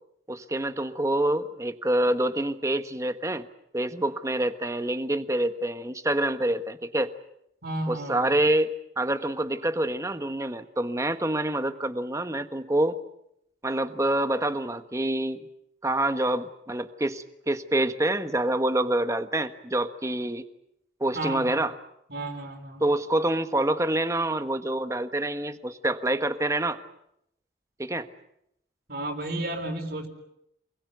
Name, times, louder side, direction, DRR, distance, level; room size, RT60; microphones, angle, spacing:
voice 1, 0.3-3.5 3.7-7.1 7.9-8.7 9.0-13.0 13.6-15.4 15.8-20.5 21.0-21.7 22.8-26.8 27.8-28.1, right 1 dB, 15° right, 9 dB, 1.3 m, -26 dB
voice 2, 7.6-8.2 21.1-21.6 22.1-22.8 28.9-30.1, right 1 dB, 60° right, 1 dB, 3.9 m, -32 dB
28.0 x 21.5 x 8.1 m, 0.77 s
head